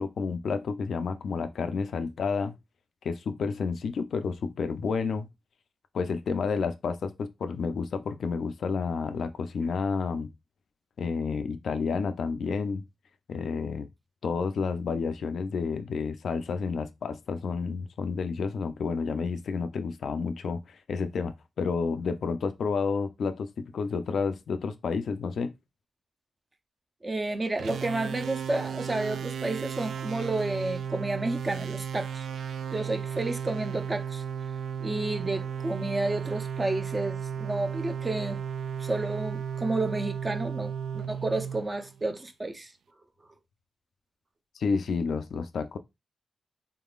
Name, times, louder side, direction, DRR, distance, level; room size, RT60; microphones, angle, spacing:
voice 1, 0.0-2.6 3.0-5.3 5.9-10.3 11.0-12.8 13.3-13.9 14.2-25.5 44.6-45.8, left 5 dB, 70° left, 0.4 m, -30 dB
voice 2, 27.0-32.2 32.7-34.2 34.8-38.4 38.8-42.7, right 2 dB, 20° right, 0.5 m, -31 dB
sound 1, 27.6-42.2, right 7 dB, 80° right, 0.3 m, -34 dB
3.8 x 3.6 x 2.4 m
wide cardioid pair, 145°, 0 cm